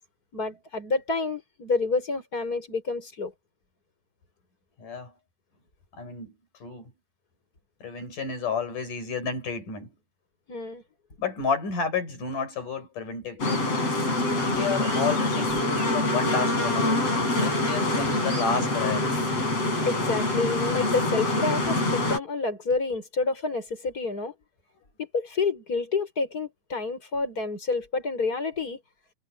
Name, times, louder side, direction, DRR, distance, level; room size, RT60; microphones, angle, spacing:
voice 1, 0.3-3.3 10.5-10.8 19.8-24.3 25.0-28.8, left 3 dB, 25° left, 6.9 m, -28 dB
voice 2, 4.8-5.1 5.9-6.4 6.6-6.9 7.8-9.9 11.2-13.7 14.5-15.7 15.9-17.1 17.4-19.3, left 5 dB, 90° left, 7.3 m, -31 dB
sound 1, 13.4-22.2, left 2 dB, 50° left, 8.8 m, -25 dB
omnidirectional pair, 3.6 m